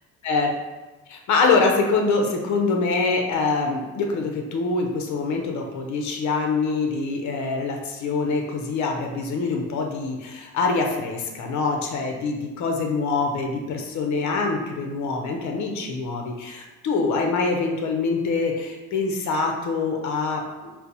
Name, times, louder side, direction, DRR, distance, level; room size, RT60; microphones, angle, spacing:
voice 1, 1.1-20.7, left 4 dB, 70° left, 2 dB, 0.6 m, -24 dB
4.2 x 2.0 x 2.7 m, 1.2 s
cardioid pair, 90°, 30 cm